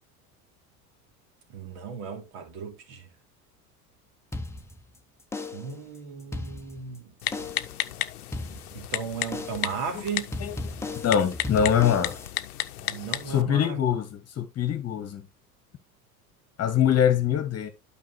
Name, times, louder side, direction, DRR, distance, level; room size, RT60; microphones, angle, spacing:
voice 1, 1.5-3.1 5.5-7.1 8.7-10.4 12.8-13.8, right 6 dB, 60° right, 3.1 m, -36 dB
sound 1, 4.3-5.0 5.3-5.8 6.2-7.0 7.3-7.8 8.3-9.0 9.3-9.8 10.3-12.3, left 2 dB, 5° left, 0.9 m, -36 dB
Typing, 7.2-13.4, left 13 dB, 75° left, 0.7 m, -34 dB
voice 2, 10.9-12.2 13.3-15.2 16.6-17.7, left 9 dB, 35° left, 1.5 m, -24 dB
11.5 x 5.3 x 3.1 m
figure-of-eight pair, 75°, 46 cm